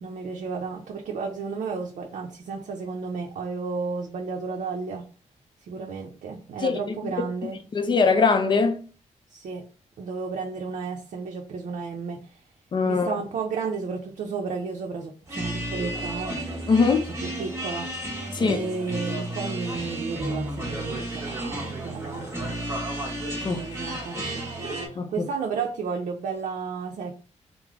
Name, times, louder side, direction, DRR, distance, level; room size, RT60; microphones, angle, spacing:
voice 1, 0.0-5.1 5.7-7.6 9.3-9.7 10.0-12.4 12.9-16.4 17.2-17.9 18.3-22.5 23.4-24.5 24.9-27.2, right 5 dB, 75° right, 0.5 m, -32 dB
voice 2, 7.7-8.8 12.7-13.1 16.7-17.1 18.3-18.6 23.4-23.6 25.0-25.3, left 4 dB, 40° left, 0.4 m, -21 dB
sound 1, 15.3-24.9, right 1 dB, 20° right, 1.1 m, -32 dB
3.3 x 2.0 x 3.5 m
wide cardioid pair, 155°, 13 cm